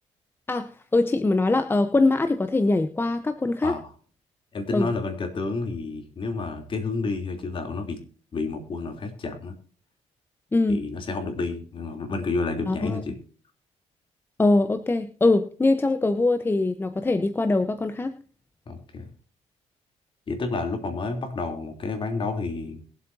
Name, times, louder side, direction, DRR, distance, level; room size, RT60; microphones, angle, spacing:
voice 1, 0.5-3.8 4.7-4.9 10.5-10.8 12.7-13.0 14.4-18.2, left 2 dB, 20° left, 9 dB, 0.9 m, -22 dB
voice 2, 4.5-8.0 8.3-9.5 10.7-13.1 18.7-19.1 20.3-22.8, left 3 dB, 45° left, 5 dB, 3.2 m, -30 dB
22.0 x 8.0 x 2.7 m, 0.42 s
cardioid pair, 105°, 12 cm